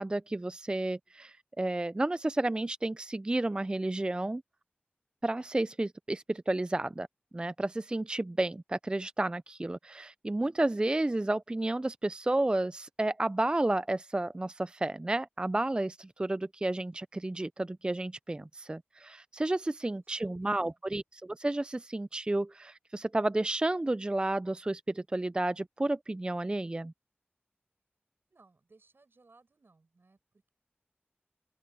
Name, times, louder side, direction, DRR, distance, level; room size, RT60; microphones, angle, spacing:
voice 1, 0.0-4.4 5.2-7.1 7.3-26.9, right 2 dB, 25° right, 0.3 m, -31 dB
voice 2, 20.4-20.8 28.3-30.5, right 3 dB, 70° right, 6.2 m, -63 dB
open air
wide cardioid pair, 65°, 4 cm